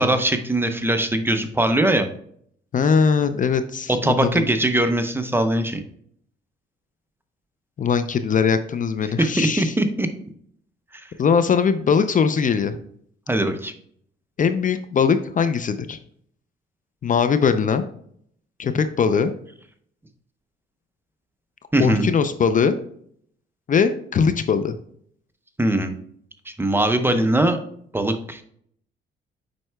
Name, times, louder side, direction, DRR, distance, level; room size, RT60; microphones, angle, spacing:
voice 1, 0.0-2.1 3.9-5.8 9.2-10.1 13.3-13.7 21.7-22.1 25.6-26.0 26.5-27.6 27.9-28.4, right 1 dB, 10° right, 8 dB, 0.7 m, -21 dB
voice 2, 2.7-4.4 7.8-9.7 11.2-12.8 14.4-16.0 17.0-17.8 18.6-19.3 21.8-22.8 23.7-24.8, left 6 dB, 40° left, 11 dB, 0.5 m, -20 dB
7.7 x 5.4 x 2.3 m, 0.65 s
cardioid pair, 90°, 20 cm